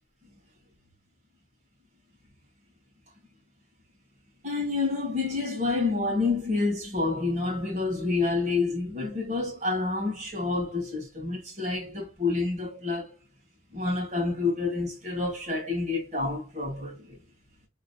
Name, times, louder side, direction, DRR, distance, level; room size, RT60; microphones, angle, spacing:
voice 1, 4.4-13.1 13.7-17.2, left 3 dB, 40° right, 2.2 m, -28 dB
3.8 x 3.7 x 2.3 m
head